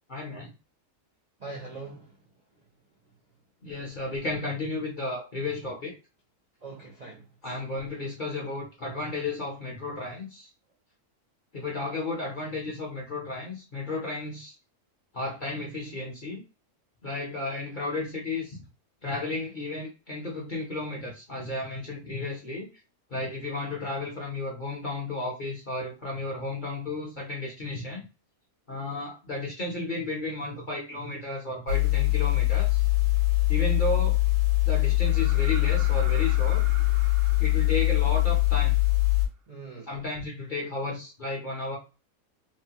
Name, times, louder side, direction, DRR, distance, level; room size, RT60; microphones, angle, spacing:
voice 1, 0.1-0.5 3.6-5.9 7.4-10.5 11.5-14.5 15.1-16.4 17.0-18.6 19.0-22.7 23.1-28.0 28.7-32.8 33.5-34.2 34.6-36.6 37.4-38.8 39.9-41.8, left 2 dB, 45° left, 0.7 m, -33 dB
voice 2, 1.4-2.2 6.6-7.5 39.5-40.0, right 3 dB, 50° right, 0.5 m, -42 dB
sound 1, 31.7-39.3, left 19 dB, 80° right, 1.3 m, -23 dB
sound 2, 35.0-38.8 40.7-40.8, right 5 dB, 65° right, 0.9 m, -45 dB
3.0 x 2.1 x 2.8 m
omnidirectional pair, 1.6 m